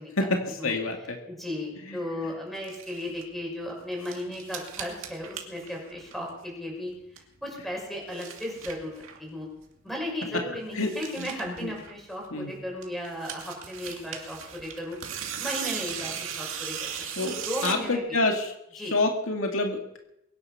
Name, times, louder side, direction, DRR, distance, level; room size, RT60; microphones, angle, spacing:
voice 1, 0.2-1.2 1.9-2.0 10.3-10.5 10.7-10.9 11.2-11.7 12.3-12.5 17.2-17.3 17.6-20.0, left 2 dB, 80° left, 2 dB, 2.2 m, -28 dB
voice 2, 1.3-6.9 7.4-9.5 9.8-15.0 15.4-18.2 18.8-18.9, left 1 dB, ahead, -1 dB, 6.1 m, -35 dB
sound 1, 2.5-3.2 3.7-6.5 6.7-7.4 7.8-9.3 9.6-9.7 10.0-10.1 10.3-10.4 10.6-12.4 12.8-17.9, right 8 dB, 80° right, 2.5 m, -38 dB
22.5 x 10.0 x 5.8 m, 0.83 s
head